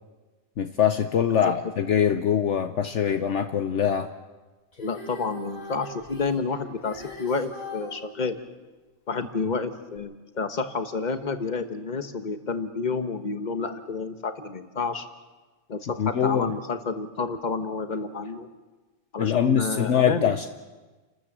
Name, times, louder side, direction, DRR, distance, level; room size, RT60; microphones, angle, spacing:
voice 1, 0.6-4.1 16.0-16.5 19.2-20.5, left 8 dB, 65° left, 7 dB, 1.1 m, -23 dB
Female singing, 4.7-8.0 10.0-10.1, left 1 dB, 80° left, 6.9 m, -40 dB
voice 2, 4.8-8.4 9.1-15.1 15.7-18.5 19.1-20.3, left 4 dB, 35° left, 8 dB, 1.3 m, -30 dB
30.0 x 13.5 x 7.4 m, 1.3 s
omnidirectional pair, 1.4 m